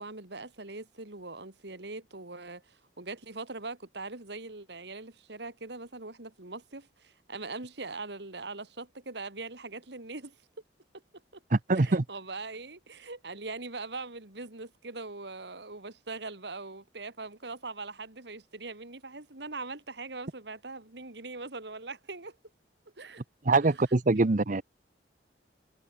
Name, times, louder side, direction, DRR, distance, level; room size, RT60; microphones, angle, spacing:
voice 1, 0.0-10.3 11.3-11.4 11.7-22.4 23.0-23.2 24.1-24.3, right 3 dB, 65° right, 2.5 m, -41 dB
voice 2, 11.5-12.0 23.4-24.6, right 3 dB, 45° right, 0.9 m, -24 dB
head